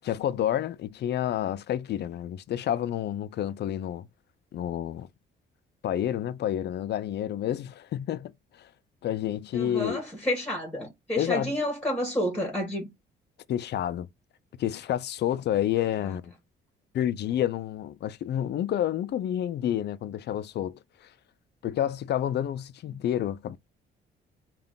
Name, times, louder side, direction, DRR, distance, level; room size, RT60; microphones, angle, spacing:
voice 1, 0.0-4.1 4.5-5.1 5.8-8.3 8.6-8.7 9.0-10.0 11.2-11.6 13.5-14.1 14.6-16.3 16.9-21.1 21.6-23.6, left 11 dB, 60° left, 0.4 m, -29 dB
voice 2, 9.5-12.9, equal, 5° left, 1.6 m, -30 dB
3.4 x 2.5 x 3.7 m
cardioid pair, 90°, 20 cm